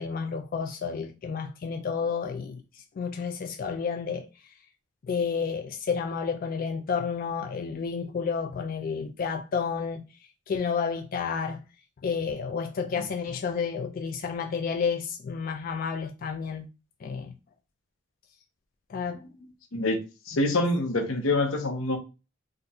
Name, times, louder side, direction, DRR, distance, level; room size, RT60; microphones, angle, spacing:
voice 1, 0.0-4.3 5.1-10.0 10.5-11.6 12.0-16.7 17.0-17.3 18.9-19.3, left 6 dB, 45° left, 0.3 m, -31 dB
voice 2, 20.3-22.0, left 2 dB, 90° left, 0.8 m, -26 dB
2.5 x 2.3 x 4.0 m
head